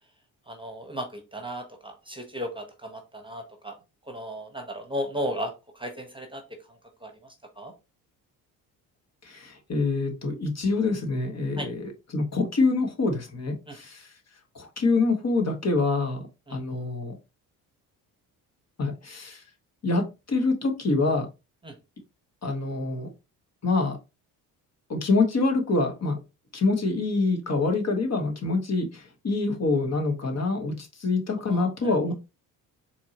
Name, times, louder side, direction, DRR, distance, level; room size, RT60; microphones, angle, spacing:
voice 1, 0.5-3.8 4.1-6.4 7.0-7.1 7.6-7.7 11.6-11.7 13.7-13.8 16.5-16.6 21.6-21.7 31.5-32.1, equal, 10° right, 5 dB, 1.2 m, -35 dB
voice 2, 9.2-14.1 14.5-17.1 18.8-19.4 19.8-21.3 22.4-23.1 23.6-24.0 24.9-26.2 26.5-32.1, left 3 dB, 35° left, 3 dB, 1.3 m, -26 dB
4.4 x 2.9 x 2.9 m, 0.27 s
hypercardioid pair, 60°, 44 cm